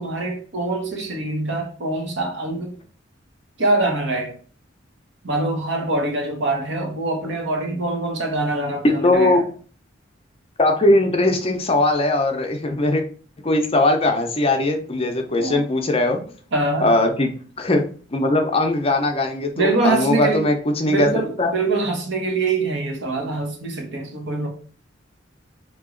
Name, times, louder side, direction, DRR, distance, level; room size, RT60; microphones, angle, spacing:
voice 1, 0.0-2.7 3.6-4.4 5.2-9.4 15.4-15.6 16.5-16.9 19.5-20.5 20.9-24.5, right 2 dB, 65° right, 0.9 m, -24 dB
voice 2, 8.8-9.4 10.6-13.0 13.4-16.2 16.8-17.3 17.6-17.8 18.1-21.1 21.4-21.5, left 2 dB, 30° left, 0.5 m, -19 dB
2.9 x 2.8 x 3.7 m
head